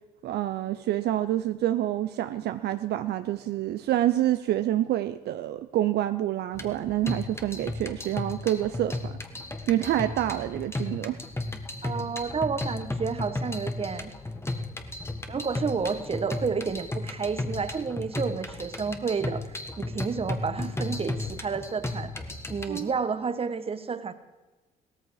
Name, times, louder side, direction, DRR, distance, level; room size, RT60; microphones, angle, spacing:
voice 1, 0.2-9.2 9.7-11.2 22.7-22.9, right 13 dB, 65° right, 10 dB, 0.6 m, -27 dB
sound 1, 6.5-22.8, left 2 dB, 15° left, 1.7 m, -34 dB
voice 2, 11.8-14.1 15.3-22.1 22.5-24.1, right 5 dB, 30° right, 11 dB, 1.4 m, -30 dB
17.0 x 14.0 x 4.9 m, 1.2 s
supercardioid pair, 75°, 18 cm